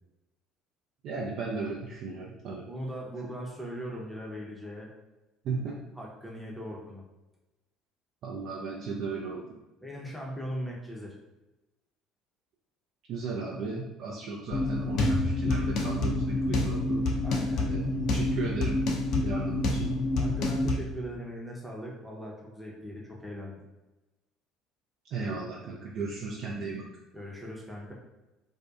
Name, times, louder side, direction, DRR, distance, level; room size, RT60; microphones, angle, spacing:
voice 1, 1.0-2.6 5.4-5.8 8.2-9.5 13.1-17.0 17.7-17.8 18.1-18.8 19.2-19.9 25.1-26.8, right 4 dB, 55° right, -3 dB, 0.3 m, -35 dB
voice 2, 2.7-4.9 6.0-7.0 9.8-11.2 17.2-17.7 20.2-23.6 27.1-27.9, equal, ahead, -4 dB, 0.6 m, -39 dB
sound 1, 14.5-20.7, left 2 dB, 55° left, 0.5 m, -27 dB
2.6 x 2.2 x 2.3 m, 1.1 s
hypercardioid pair, 60°, 0 cm